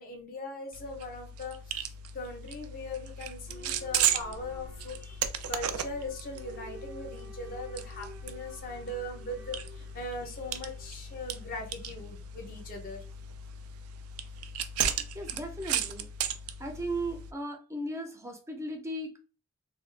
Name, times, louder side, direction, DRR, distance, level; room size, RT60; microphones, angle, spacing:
voice 1, 0.0-1.8 2.1-5.2 5.5-13.0, left 2 dB, 40° left, 2 dB, 0.5 m, -40 dB
sound 1, 0.7-17.3, right 7 dB, 90° right, 0.3 m, -36 dB
Boat Water vehicle / Alarm, 3.5-14.1, right 1 dB, 65° right, 0.7 m, -52 dB
voice 2, 15.1-16.1 16.6-19.2, right 1 dB, 15° right, 4 dB, 0.4 m, -36 dB
2.2 x 2.0 x 3.1 m, 0.38 s
head